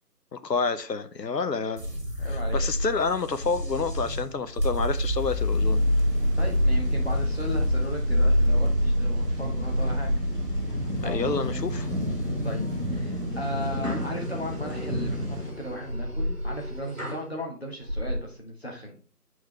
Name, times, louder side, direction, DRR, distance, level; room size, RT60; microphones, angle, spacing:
voice 1, 0.3-1.8 2.2-5.8 11.0-11.9, left 4 dB, 85° left, 0.9 m, -29 dB
sound 1, 1.8-16.0, equal, 80° right, 2.0 m, -27 dB
voice 2, 2.2-2.6 6.4-10.1 11.0-11.6 12.4-12.6 12.9-19.0, equal, 40° left, 1.4 m, -36 dB
sound 2, 5.2-15.5, equal, 35° right, 1.8 m, -33 dB
sound 3, 11.2-11.9 12.3-12.7 13.3-17.3 17.8-18.2, equal, 55° right, 2.9 m, -35 dB
8.1 x 4.6 x 3.1 m
figure-of-eight pair, 175°, 48 cm